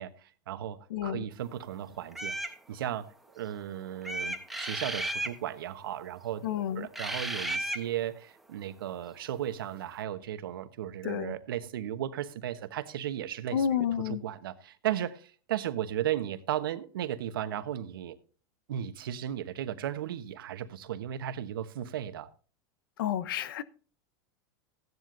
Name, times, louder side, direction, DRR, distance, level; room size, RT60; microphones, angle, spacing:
voice 1, 0.0-6.4 6.7-13.7 14.0-18.2 18.7-22.3, right 11 dB, 85° right, 1.1 m, -35 dB
voice 2, 0.9-1.2 6.4-6.9 11.0-11.3 13.5-14.2 23.0-23.6, left 9 dB, 80° left, 0.9 m, -30 dB
sound 1, 2.1-2.5 4.0-5.4 6.9-7.8, right 1 dB, ahead, 1.3 m, -33 dB
15.5 x 11.0 x 2.6 m
supercardioid pair, 120°, 11 cm